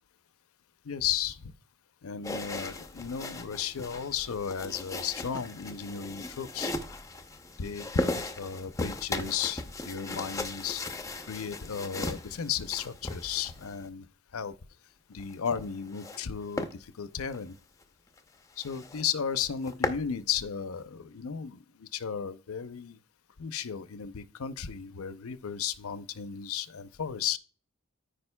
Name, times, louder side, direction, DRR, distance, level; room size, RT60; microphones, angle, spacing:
voice 1, 0.8-1.5 2.0-6.7 7.6-10.8 11.2-14.0 14.3-14.5 15.1-17.6 18.6-23.0 23.4-27.4, left 7 dB, 85° left, 0.6 m, -34 dB
sound 1, 2.2-13.9 15.2-16.2 16.6-16.7 17.2-17.4 17.8-17.9 18.2-18.3 18.6-19.0 19.4-20.1, left 2 dB, 15° left, 0.6 m, -37 dB
14.0 x 5.0 x 2.2 m
head